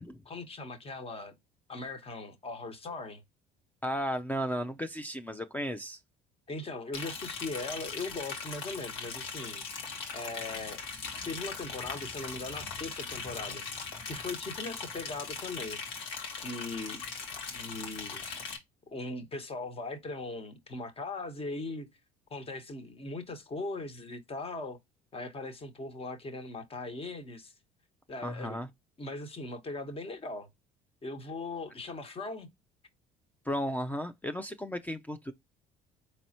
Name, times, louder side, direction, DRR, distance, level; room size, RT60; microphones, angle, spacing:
voice 1, 0.0-1.3 1.7-3.2 6.5-9.6 10.1-10.8 11.3-13.6 14.0-15.8 16.4-17.0 17.5-18.2 18.9-21.9 22.3-24.8 25.1-27.5 28.1-28.6 29.0-30.5 31.0-32.5, left 2 dB, 30° left, 1.3 m, -39 dB
voice 2, 3.8-6.0 28.2-28.7 33.5-35.3, equal, 10° left, 0.5 m, -34 dB
Liquid, 6.9-18.6, left 5 dB, 85° left, 1.5 m, -40 dB
4.1 x 3.1 x 2.8 m
supercardioid pair, 85°, 18 cm